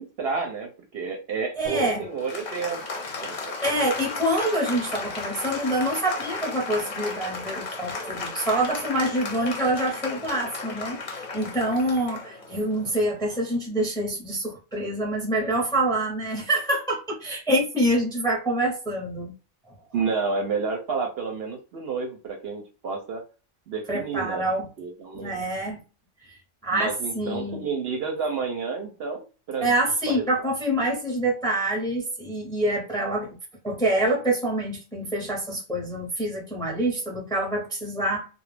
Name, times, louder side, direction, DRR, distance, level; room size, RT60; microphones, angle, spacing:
voice 1, 0.0-3.7 19.9-23.2 23.7-24.4 24.8-25.3 26.7-29.7 30.1-30.3, right 5 dB, 65° right, 3 dB, 0.7 m, -30 dB
Applause, 1.6-13.5, left 3 dB, 45° left, 0.6 m, -34 dB
voice 2, 1.6-2.1 3.6-19.3 23.9-24.7 25.1-25.8 26.3-26.4 26.6-27.6 29.6-33.3 33.6-38.3, right 1 dB, 5° left, -1 dB, 0.5 m, -26 dB
2.3 x 2.0 x 3.1 m, 0.33 s
omnidirectional pair, 1.3 m